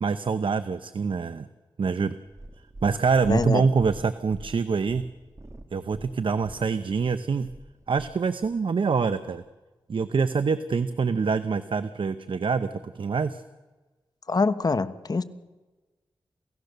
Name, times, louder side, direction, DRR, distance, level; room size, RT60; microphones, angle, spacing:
voice 1, 0.0-1.5 1.8-2.1 2.8-5.0 5.7-7.5 7.9-9.4 9.9-13.4, right 5 dB, 65° right, 12 dB, 0.8 m, -25 dB
Purr, 2.3-8.6 9.3-9.4, right 1 dB, 30° right, 1.9 m, -44 dB
voice 2, 3.2-3.7 14.3-15.2, left 4 dB, 45° left, 11 dB, 1.2 m, -24 dB
28.5 x 16.5 x 6.8 m, 1.2 s
cardioid pair, 70°, 9 cm